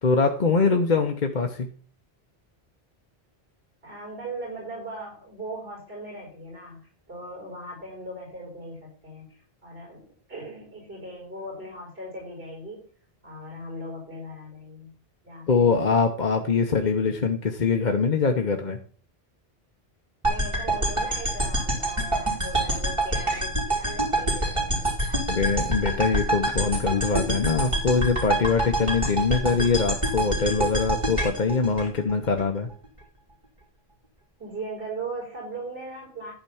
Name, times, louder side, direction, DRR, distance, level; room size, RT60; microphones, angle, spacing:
voice 1, 0.0-1.7 15.5-18.8 25.3-32.7, left 4 dB, 50° left, 4 dB, 1.0 m, -23 dB
voice 2, 3.8-12.9 13.2-14.9 15.2-16.0 20.2-25.4 34.4-36.3, right 1 dB, 70° right, -3 dB, 5.2 m, -39 dB
sound 1, 20.2-32.4, right 1 dB, 30° right, 3.3 m, -26 dB
11.5 x 4.5 x 7.0 m, 0.42 s
omnidirectional pair, 1.0 m